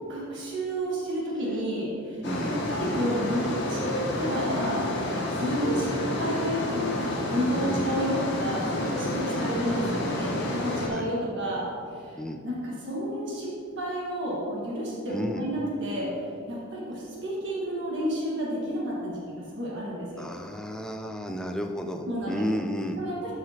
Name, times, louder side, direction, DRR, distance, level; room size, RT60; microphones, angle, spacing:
voice 1, 0.1-4.9 5.4-11.7 11.9-12.2 12.4-13.5 13.8-16.1 16.5-19.2 19.5-20.3 22.0-22.4 23.0-23.3, equal, 55° right, -5 dB, 1.6 m, -30 dB
sound 1, 2.2-10.9, left 1 dB, 55° left, 1.2 m, -30 dB
voice 2, 2.2-2.6 7.5-8.1 9.3-9.5 10.8-11.1 12.2-12.4 15.1-15.5 20.2-23.0, equal, 5° left, 4 dB, 0.4 m, -33 dB
13.0 x 4.9 x 2.9 m, 2.4 s
head